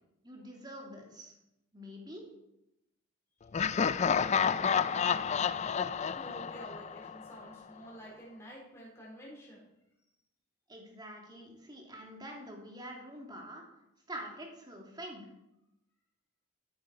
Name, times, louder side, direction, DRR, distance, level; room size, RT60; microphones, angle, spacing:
voice 1, 0.2-1.3 1.7-2.2 10.7-13.6 14.1-15.3, equal, 20° right, 0 dB, 2.7 m, -46 dB
Laughter, 3.5-7.4, left 6 dB, 30° left, 0.3 m, -30 dB
voice 2, 5.1-5.5 6.1-9.6, right 1 dB, 15° left, -4 dB, 4.3 m, -50 dB
13.0 x 9.5 x 5.2 m, 0.86 s
head